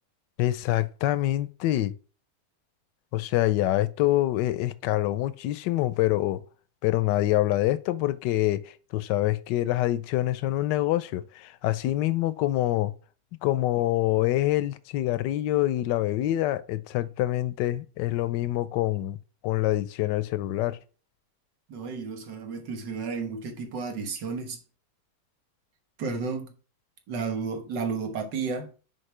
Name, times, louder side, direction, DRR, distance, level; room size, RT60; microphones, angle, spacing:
voice 1, 0.4-1.9 3.1-6.4 6.8-12.9 13.4-19.2 19.4-20.8, left 15 dB, 85° left, 1.2 m, -26 dB
voice 2, 21.7-24.6 26.0-26.5 27.1-28.7, right 5 dB, 90° right, 1.9 m, -32 dB
6.5 x 4.5 x 3.2 m
omnidirectional pair, 1.8 m